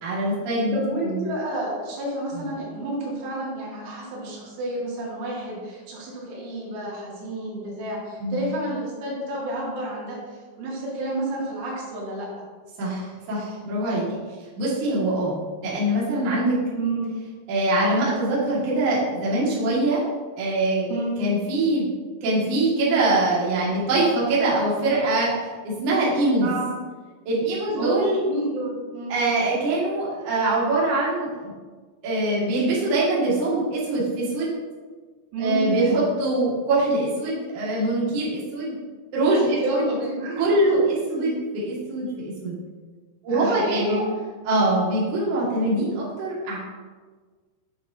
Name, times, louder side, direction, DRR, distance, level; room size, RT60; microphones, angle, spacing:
voice 1, 0.0-0.8 1.0-1.2 2.3-2.5 8.2-8.5 12.8-14.2 14.6-16.6 17.5-20.0 20.4-21.9 22.2-25.3 25.6-26.5 27.3-28.2 29.1-31.5 32.0-34.5 35.4-38.7 39.1-39.9 40.4-42.5 43.2-44.1 44.5-46.6, right 2 dB, 50° right, -7 dB, 2.9 m, -23 dB
voice 2, 0.7-12.3 16.8-17.1 20.9-21.1 26.4-26.7 27.8-28.0 28.3-29.2 35.3-36.1 39.6-40.5 43.3-44.0, right 1 dB, 90° right, -5 dB, 4.4 m, -30 dB
9.3 x 6.5 x 2.8 m, 1.4 s
omnidirectional pair, 5.3 m